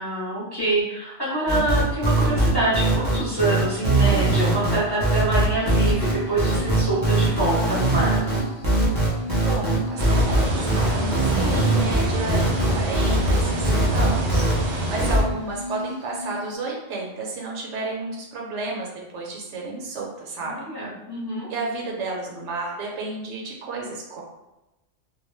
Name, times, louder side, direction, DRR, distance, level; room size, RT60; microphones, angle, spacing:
voice 1, 0.0-8.2 20.4-21.5, right 1 dB, 25° left, -9 dB, 0.7 m, -26 dB
sound 1, 1.5-14.5 15.0-15.2, right 1 dB, 20° right, 0.7 m, -21 dB
sound 2, 5.5-16.6, left 1 dB, 65° left, 0.8 m, -35 dB
voice 2, 9.4-18.9 19.1-20.6 21.5-24.2, right 3 dB, 75° right, -2 dB, 0.9 m, -31 dB
sound 3, 10.0-15.2, right 1 dB, 60° right, 0.5 m, -26 dB
2.2 x 2.1 x 3.2 m, 0.99 s
omnidirectional pair, 1.2 m